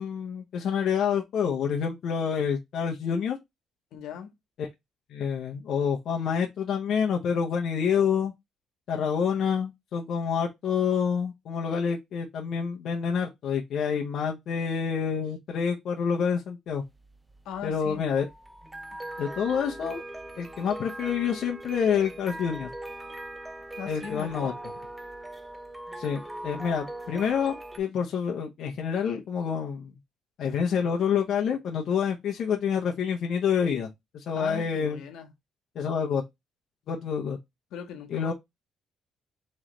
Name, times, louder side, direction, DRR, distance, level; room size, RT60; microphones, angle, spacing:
voice 1, 0.0-3.4 4.6-4.7 5.1-8.3 8.9-16.8 17.6-18.3 19.2-20.0 20.4-22.7 23.9-24.5 26.0-29.9 30.4-33.9 34.1-35.0 35.8-36.2 36.9-37.4 38.1-38.3, left 7 dB, 60° left, 0.7 m, -27 dB
voice 2, 3.9-4.3 17.4-18.1 23.8-24.6 34.3-35.3 37.7-38.3, left 7 dB, 80° left, 1.0 m, -39 dB
sound 1, 16.7-27.8, right 1 dB, 10° right, 0.5 m, -40 dB
3.8 x 3.2 x 3.0 m
cardioid pair, 130°, 0 cm